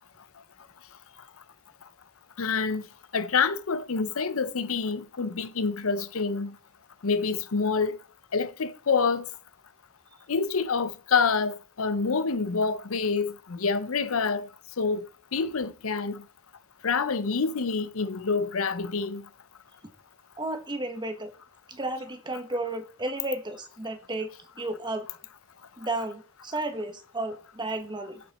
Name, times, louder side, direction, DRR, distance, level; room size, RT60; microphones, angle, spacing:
voice 1, 2.4-2.8 3.1-6.5 7.0-8.0 8.3-9.3 10.3-14.5 14.8-15.1 15.3-16.2 16.8-19.2, left 5 dB, 75° left, 0.7 m, -27 dB
voice 2, 20.4-21.3 21.7-24.3 24.6-25.1 25.8-28.2, right 2 dB, 20° right, 1.3 m, -33 dB
16.0 x 6.0 x 4.3 m
head